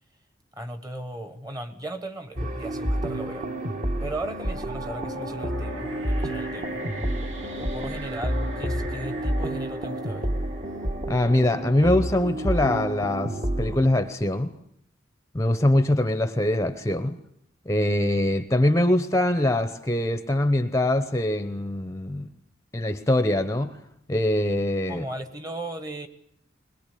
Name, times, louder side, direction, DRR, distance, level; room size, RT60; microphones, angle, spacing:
voice 1, 0.5-3.5 4.0-6.8 7.6-10.3 24.9-26.1, right 1 dB, 20° right, 1.4 m, -37 dB
sound 1, 2.4-13.9, right 1 dB, 35° right, 1.6 m, -29 dB
sound 2, 4.5-11.6, right 1 dB, 80° right, 2.8 m, -40 dB
voice 2, 11.1-14.5 15.3-17.2 17.7-22.3 22.7-23.8 24.1-25.0, left 1 dB, 15° left, 0.8 m, -23 dB
21.5 x 21.0 x 8.5 m
head